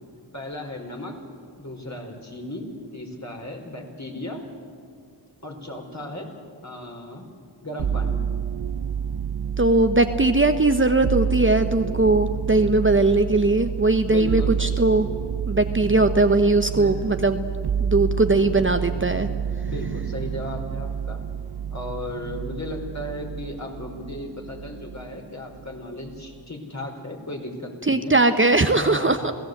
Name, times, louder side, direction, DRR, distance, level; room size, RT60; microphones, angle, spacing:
voice 1, 0.3-1.2 1.6-4.4 5.4-6.3 6.6-7.3 7.6-8.3 14.0-14.7 16.7-17.4 19.6-21.2 21.7-28.2 28.7-29.3, left 1 dB, 40° left, 2 dB, 4.9 m, -35 dB
sound 1, 7.8-25.2 25.5-26.3, right 7 dB, 60° right, 0.7 m, -29 dB
voice 2, 9.6-15.1 15.5-17.4 17.8-19.3 27.8-29.3, right 2 dB, 25° right, 8 dB, 1.1 m, -20 dB
27.5 x 17.0 x 8.1 m, 2.2 s
cardioid pair, 40°, 44 cm